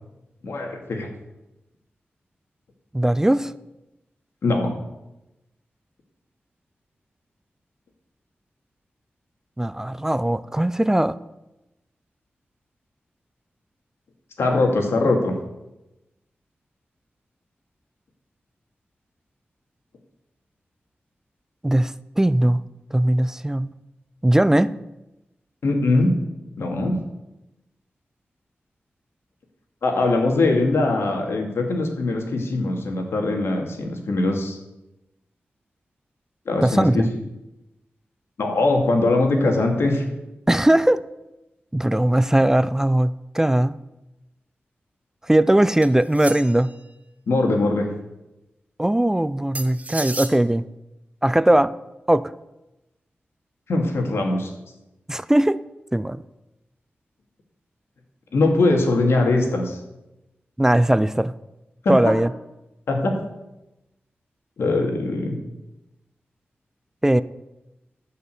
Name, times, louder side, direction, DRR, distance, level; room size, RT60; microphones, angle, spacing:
voice 1, 0.4-1.1 4.4-4.7 14.4-15.3 25.6-26.1 26.6-27.0 29.8-34.6 36.5-37.1 38.4-40.0 47.3-47.9 53.7-54.5 58.3-59.8 61.8-61.9 62.9-63.1 64.6-65.4, left 2 dB, 90° left, 2 dB, 2.3 m, -21 dB
voice 2, 2.9-3.5 9.6-11.2 21.6-22.6 22.9-23.7 24.2-24.7 36.6-37.1 40.5-41.0 41.7-43.7 45.3-46.7 48.8-50.6 51.2-51.7 52.1-52.3 55.1-55.6 55.9-56.2 60.6-61.3 61.9-62.3 67.0-67.2, right 1 dB, 10° right, 16 dB, 0.4 m, -19 dB
sound 1, 45.8-46.7 49.5-50.4, right 2 dB, 35° right, 1.1 m, -33 dB
13.5 x 5.7 x 7.8 m, 0.96 s
wide cardioid pair, 85°, 4 cm